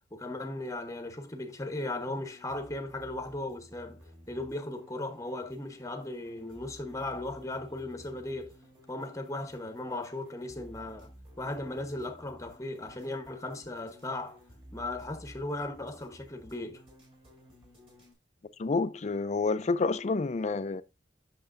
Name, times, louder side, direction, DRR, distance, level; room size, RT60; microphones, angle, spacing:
voice 1, 0.1-4.0 4.3-8.5 8.9-11.1 11.4-14.4 14.7-16.8, left 2 dB, 20° left, 1.0 m, -37 dB
sound 1, 1.7-18.1, equal, 30° right, 3.8 m, -55 dB
voice 2, 18.6-20.8, left 3 dB, 40° left, 0.4 m, -29 dB
8.8 x 6.6 x 2.5 m
head